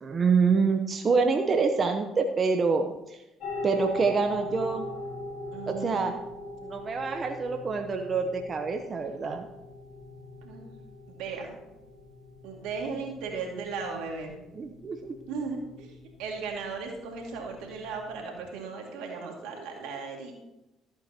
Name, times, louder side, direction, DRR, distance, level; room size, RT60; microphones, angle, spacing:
voice 1, 0.0-3.2 3.6-4.8 5.7-6.1 6.6-9.4 14.5-15.1, right 4 dB, 40° right, 5 dB, 0.9 m, -26 dB
sound 1, 3.4-18.2, left 2 dB, 70° left, 2.7 m, -41 dB
voice 2, 5.5-6.0 10.4-10.7 11.1-11.6 12.4-14.3 15.3-15.9 16.2-20.3, right 4 dB, 80° right, 1 dB, 2.3 m, -36 dB
14.0 x 8.6 x 3.0 m, 0.93 s
supercardioid pair, 65°, 0 cm